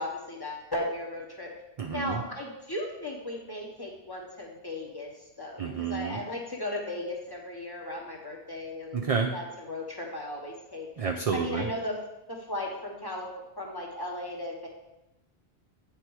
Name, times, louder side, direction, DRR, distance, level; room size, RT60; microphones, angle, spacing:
voice 1, 0.0-1.5 1.9-9.0 9.3-10.9 11.3-12.0 12.3-13.3 13.6-14.7, left 1 dB, 25° left, -1 dB, 1.0 m, -36 dB
voice 2, 1.8-2.2 5.6-6.2 8.9-9.3 11.0-11.7, right 5 dB, 50° right, 2 dB, 0.4 m, -29 dB
8.3 x 3.5 x 4.7 m, 0.96 s
omnidirectional pair, 1.1 m